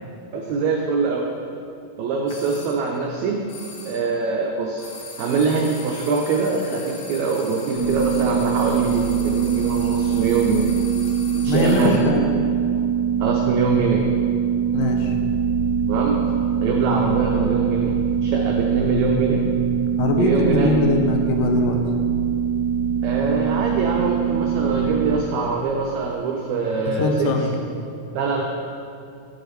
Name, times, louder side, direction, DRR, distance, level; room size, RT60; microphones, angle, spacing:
voice 1, 0.3-1.3 2.0-3.4 3.8-4.8 5.2-10.8 11.3-12.0 13.2-14.0 15.9-16.2 16.6-17.9 18.2-19.4 20.2-20.7 23.0-27.3 28.1-28.4, right 4 dB, 85° right, 0 dB, 1.6 m, -23 dB
sound 1, 2.3-2.8 3.5-4.1 4.8-12.1, left 4 dB, 75° left, 2.6 m, -40 dB
sound 2, 7.7-25.2, right 7 dB, 35° right, 1.1 m, -23 dB
voice 2, 11.5-12.3 14.7-15.1 20.0-21.8 26.9-27.6, left 3 dB, 90° left, 3 dB, 2.3 m, -21 dB
7.8 x 6.6 x 3.1 m, 2.5 s
omnidirectional pair, 3.8 m